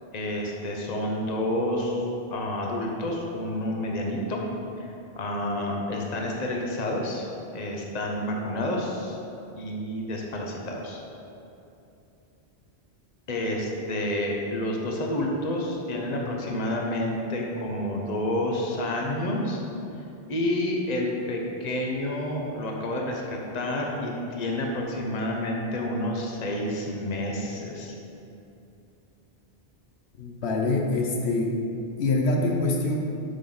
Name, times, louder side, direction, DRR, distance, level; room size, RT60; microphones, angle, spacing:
voice 1, 0.1-4.4 4.8-7.3 7.5-9.2 9.6-11.0 13.3-19.6 20.3-27.9, left 1 dB, 40° left, 0 dB, 1.0 m, -29 dB
voice 2, 30.2-31.5 32.0-32.9, left 2 dB, 85° left, 1 dB, 1.1 m, -25 dB
8.3 x 6.0 x 3.9 m, 2.7 s
omnidirectional pair, 1.1 m